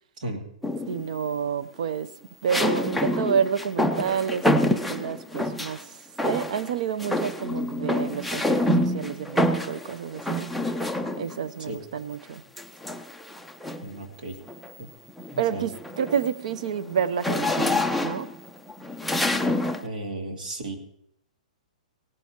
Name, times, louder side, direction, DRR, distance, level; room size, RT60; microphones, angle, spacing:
sound 1, 0.6-1.2 2.5-5.8 6.2-6.7 7.0-11.4 12.6-14.0 14.5-14.7 15.1-19.9, left 1 dB, ahead, 0.4 m, -27 dB
voice 1, 0.9-2.1 2.4-10.5 11.2-12.4 15.4-18.3, right 7 dB, 60° right, 17 dB, 0.6 m, -29 dB
voice 2, 13.8-14.4 14.8-14.9 15.3-15.6 19.8-20.8, right 2 dB, 80° right, 3 dB, 2.6 m, -34 dB
18.0 x 11.5 x 2.9 m, 0.74 s
hypercardioid pair, 165°, 4 cm